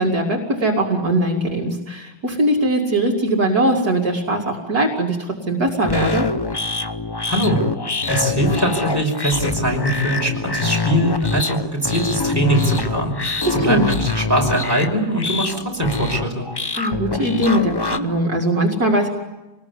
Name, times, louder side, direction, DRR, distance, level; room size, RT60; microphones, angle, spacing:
voice 1, 0.0-6.3 13.4-13.9 16.7-19.1, right 1 dB, 55° right, -1 dB, 2.9 m, -20 dB
sound 1, 5.8-18.0, left 3 dB, 30° left, 0.5 m, -25 dB
voice 2, 7.2-7.6 8.1-16.5, equal, 10° right, 0 dB, 5.6 m, -21 dB
26.5 x 20.0 x 9.7 m, 1.1 s
omnidirectional pair, 1.9 m